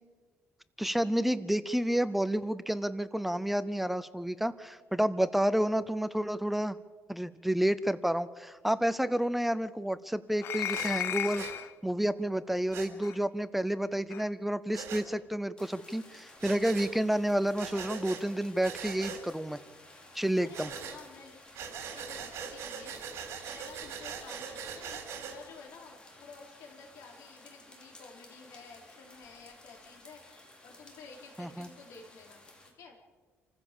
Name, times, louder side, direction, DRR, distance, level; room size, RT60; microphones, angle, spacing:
voice 1, 0.8-6.8 7.1-19.6 20.1-20.7 31.4-31.7, right 1 dB, 5° right, 14 dB, 0.6 m, -30 dB
sound 1, 10.4-11.7 13.0-13.2 14.1-14.3, left 11 dB, 55° left, 0.9 m, -34 dB
Breathing, 10.7-10.9 11.4-11.5 12.7-12.9 14.7-15.0 16.4-16.9 17.6-18.2 18.6-19.2 20.5-21.0 21.5-25.4, right 7 dB, 65° right, 3.9 m, -41 dB
sound 2, 15.6-32.7, left 1 dB, 20° left, 4.1 m, -55 dB
voice 2, 17.6-18.1 20.4-32.4 32.7-33.0, left 4 dB, 80° left, 1 dB, 4.8 m, -52 dB
28.0 x 15.0 x 7.1 m, 1.4 s
cardioid pair, 145°, 5 cm